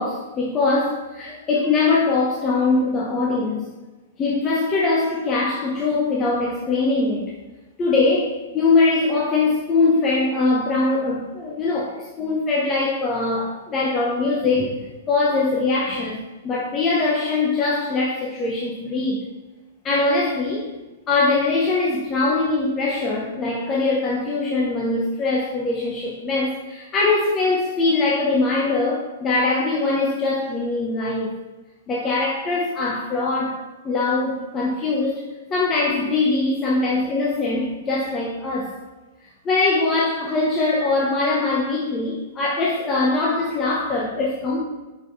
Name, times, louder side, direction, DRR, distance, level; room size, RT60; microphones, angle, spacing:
voice 1, 0.0-3.7 4.2-7.3 7.8-16.2 16.4-19.2 19.8-20.7 21.1-31.3 31.9-35.2 35.5-38.7 39.4-44.6, left 3 dB, 25° left, -4 dB, 1.0 m, -22 dB
6.5 x 5.1 x 3.3 m, 1.2 s
hypercardioid pair, 135°, 0 cm